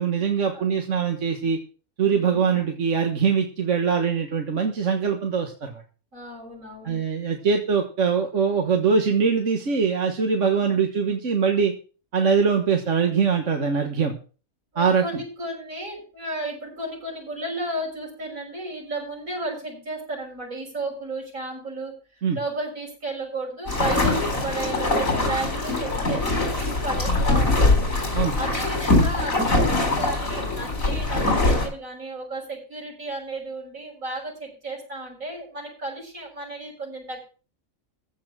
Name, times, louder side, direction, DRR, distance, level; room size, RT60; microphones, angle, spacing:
voice 1, 0.0-1.6 2.0-5.7 6.8-11.7 12.1-14.2 14.8-15.2 22.2-22.4 28.1-28.4, right 6 dB, 65° right, 4 dB, 1.8 m, -22 dB
voice 2, 6.1-7.0 14.7-21.9 22.3-37.2, right 2 dB, 85° right, -1 dB, 6.9 m, -34 dB
sound 1, 23.7-31.7, left 2 dB, 85° left, 4.4 m, -22 dB
15.0 x 5.7 x 7.5 m, 0.37 s
omnidirectional pair, 1.4 m